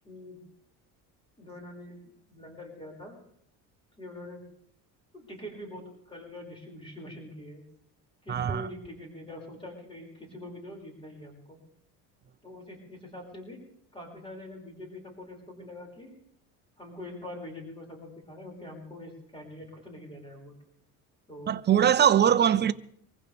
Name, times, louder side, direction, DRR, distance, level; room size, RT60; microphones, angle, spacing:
voice 1, 0.0-0.4 1.4-3.2 4.0-4.4 5.1-7.6 8.2-11.6 12.4-13.6 13.9-16.1 16.8-20.5 21.3-21.5 22.0-22.1, left 1 dB, 15° left, 6.3 m, -44 dB
voice 2, 8.3-8.7 21.5-22.7, right 9 dB, 30° right, 0.7 m, -22 dB
25.0 x 15.5 x 3.6 m
cardioid pair, 115°, 36 cm